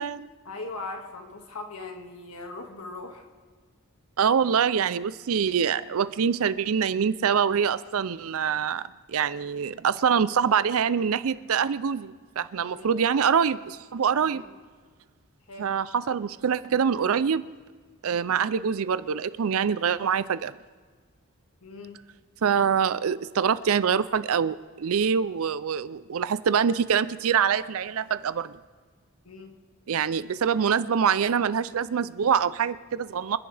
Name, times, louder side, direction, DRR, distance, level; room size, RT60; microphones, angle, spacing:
voice 1, 0.5-3.2 12.6-13.0 14.1-14.5 15.5-15.7 21.6-22.0 29.3-29.5, left 3 dB, 75° left, 3 dB, 2.0 m, -40 dB
voice 2, 4.2-8.8 9.1-14.4 15.6-17.4 18.0-20.5 22.4-28.5 29.9-33.4, right 7 dB, 70° right, 15 dB, 0.5 m, -25 dB
26.5 x 10.5 x 3.4 m, 1.5 s
head